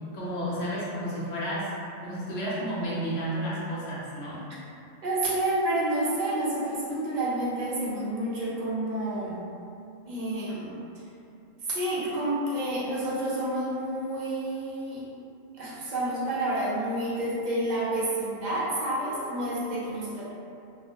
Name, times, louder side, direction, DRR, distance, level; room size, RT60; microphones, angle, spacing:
voice 1, 0.1-1.7 2.0-4.4, equal, 60° left, -7 dB, 0.8 m, -31 dB
voice 2, 5.0-9.4 10.0-10.7 11.6-15.0 15.6-20.3, right 1 dB, 55° right, -8 dB, 0.5 m, -29 dB
2.3 x 2.1 x 2.7 m, 2.6 s
omnidirectional pair, 1.4 m